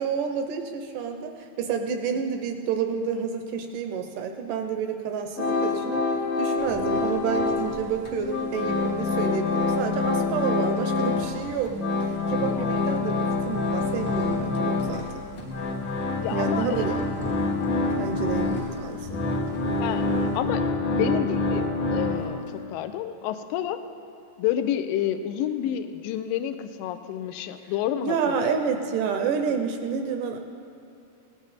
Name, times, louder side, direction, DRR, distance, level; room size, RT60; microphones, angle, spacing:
voice 1, 0.0-6.0 6.4-11.8 12.0-15.2 16.3-17.0 18.0-19.2 28.0-30.4, right 6 dB, 75° right, 5 dB, 2.0 m, -29 dB
sound 1, 5.4-7.8 8.0-11.4 11.6-22.5, left 3 dB, 60° left, 1.2 m, -26 dB
sound 2, 6.6-20.4, right 1 dB, 15° right, 0.7 m, -45 dB
voice 2, 12.5-13.0 16.1-16.8 19.8-20.7 20.9-23.8 24.4-28.4, left 11 dB, 80° left, 9 dB, 2.3 m, -29 dB
17.5 x 11.0 x 4.1 m, 2.7 s
omnidirectional pair, 4.2 m